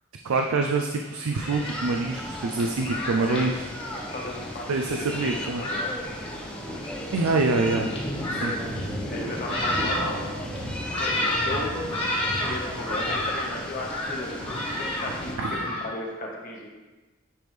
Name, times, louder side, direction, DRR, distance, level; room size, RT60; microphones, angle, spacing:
voice 1, 0.2-3.6 4.7-5.7 7.1-7.9 8.3-8.5 15.4-15.6, right 3 dB, 75° right, 3 dB, 0.4 m, -25 dB
Thunderstorm, 1.0-15.8, left 1 dB, 25° left, 1.4 m, -32 dB
sound 1, 1.5-15.4, equal, 5° left, 0.6 m, -37 dB
sound 2, 2.9-13.2, equal, 35° right, 1.0 m, -40 dB
voice 2, 3.1-3.5 3.8-5.9 9.1-10.2 11.0-11.7 12.4-16.7, left 2 dB, 45° left, -2 dB, 1.3 m, -35 dB
10.0 x 3.5 x 3.2 m, 1.2 s
head